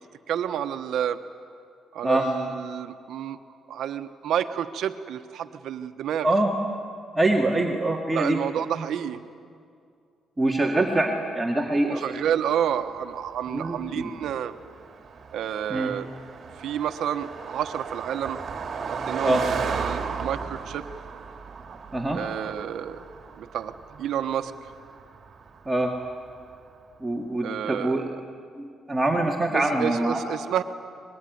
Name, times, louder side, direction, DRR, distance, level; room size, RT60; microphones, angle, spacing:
voice 1, 0.3-1.2 1.9-3.4 3.7-6.3 8.1-9.2 11.8-14.5 15.3-16.1 16.6-18.4 18.9-20.9 22.1-23.0 23.4-24.5 27.4-28.2 29.5-30.6, right 9 dB, 75° right, 9 dB, 1.2 m, -30 dB
voice 2, 7.1-8.4 10.4-12.0 13.5-14.1 15.7-15.9 19.2-19.4 21.9-22.2 25.7-25.9 27.0-28.1 28.6-30.2, right 2 dB, 15° right, -1 dB, 2.0 m, -24 dB
Car passing by, 12.9-26.6, right 5 dB, 45° right, 2.2 m, -36 dB
25.5 x 21.0 x 9.4 m, 2.4 s
cardioid pair, 130°, 0 cm